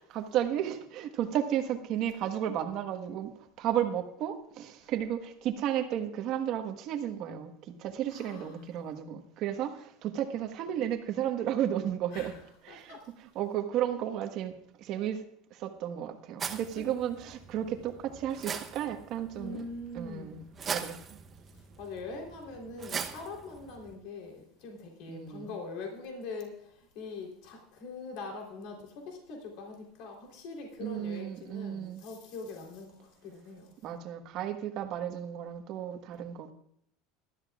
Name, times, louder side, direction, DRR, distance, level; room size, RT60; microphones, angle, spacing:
voice 1, 0.1-3.3 3.6-7.5 7.8-12.3 12.6-13.0 13.3-14.5 14.8-15.2 15.5-19.6 19.9-21.2 25.1-25.5 30.8-32.0 33.8-36.5, right 10 dB, 45° right, 1.3 m, -33 dB
voice 2, 8.1-8.6 12.1-12.4 12.7-13.0 19.3-20.4 21.8-33.7, left 3 dB, 55° left, 3.4 m, -43 dB
sound 1, 16.4-24.0, right 6 dB, 20° right, 0.8 m, -41 dB
19.0 x 13.0 x 2.4 m
cardioid pair, 165°, 0 cm